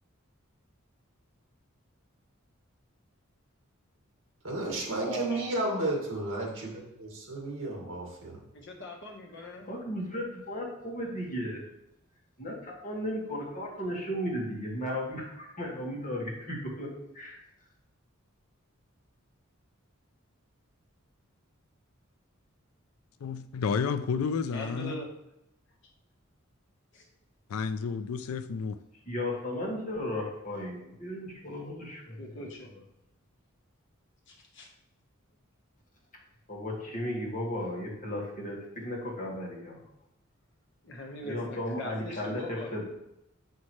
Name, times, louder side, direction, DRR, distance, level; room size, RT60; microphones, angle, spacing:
voice 1, 4.4-8.4, right 2 dB, 60° right, -1 dB, 2.0 m, -33 dB
voice 2, 5.0-5.5 8.5-9.7 24.5-25.1 26.9-27.1 32.2-32.7 34.3-34.7 40.8-42.7, equal, 55° left, 0 dB, 1.4 m, -41 dB
voice 3, 9.7-11.6 12.4-16.9 17.1-17.4 29.1-32.2 36.5-39.8 41.2-42.9, left 1 dB, 35° left, -3 dB, 1.8 m, -35 dB
voice 4, 23.2-25.0 27.5-28.8, left 5 dB, 85° left, 12 dB, 0.4 m, -31 dB
7.2 x 5.6 x 3.2 m, 0.86 s
head